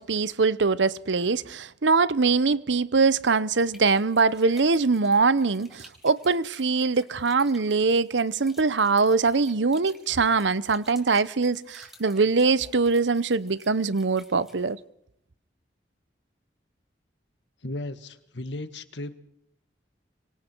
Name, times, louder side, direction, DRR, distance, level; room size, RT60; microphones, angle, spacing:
voice 1, 0.0-14.8, right 4 dB, 85° right, 0.8 m, -23 dB
sound 1, 3.7-14.7, left 1 dB, ahead, 5.6 m, -54 dB
voice 2, 17.6-19.1, left 2 dB, 80° left, 1.8 m, -35 dB
26.0 x 24.0 x 4.6 m
head